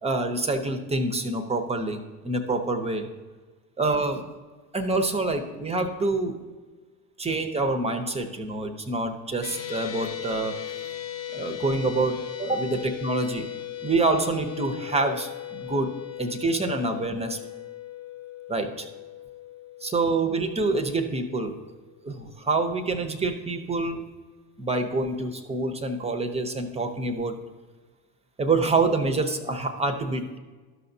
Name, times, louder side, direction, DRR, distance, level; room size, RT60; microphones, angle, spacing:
voice 1, 0.0-3.1 3.8-4.2 4.7-6.4 7.2-10.6 11.3-13.5 13.8-15.9 16.2-17.4 18.5-18.9 19.8-21.5 22.0-24.0 24.6-27.3 28.4-30.4, right 3 dB, 15° right, 6 dB, 0.7 m, -26 dB
sound 1, 9.4-21.8, left 12 dB, 75° left, 1.0 m, -38 dB
12.5 x 5.7 x 2.7 m, 1.4 s
hypercardioid pair, 90°, 46 cm